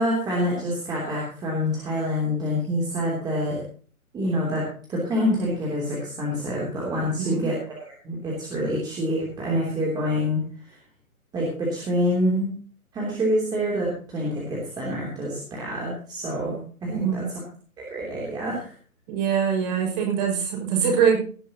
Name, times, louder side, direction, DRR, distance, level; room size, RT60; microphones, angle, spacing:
voice 1, 0.0-3.6 4.1-4.6 4.9-10.8 11.3-12.5 12.9-17.4 17.8-18.7, equal, 10° right, -4 dB, 3.1 m, -26 dB
voice 2, 16.9-17.2 19.1-21.2, right 7 dB, 30° right, 1 dB, 6.0 m, -23 dB
18.0 x 11.5 x 2.9 m, 0.42 s
hypercardioid pair, 150°, 44 cm